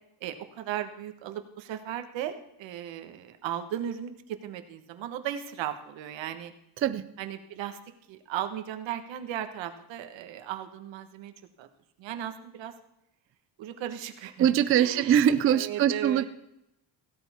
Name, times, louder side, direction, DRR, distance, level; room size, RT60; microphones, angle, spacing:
voice 1, 0.2-4.1 4.4-6.5 7.2-7.8 8.1-11.3 11.6-11.7 12.0-12.7 13.6-16.3, right 10 dB, 80° right, 8 dB, 1.5 m, -36 dB
voice 2, 6.8-7.1 14.4-16.3, right 9 dB, 30° right, 11 dB, 0.4 m, -23 dB
16.5 x 12.5 x 3.6 m, 0.83 s
cardioid pair, 175°, 45 cm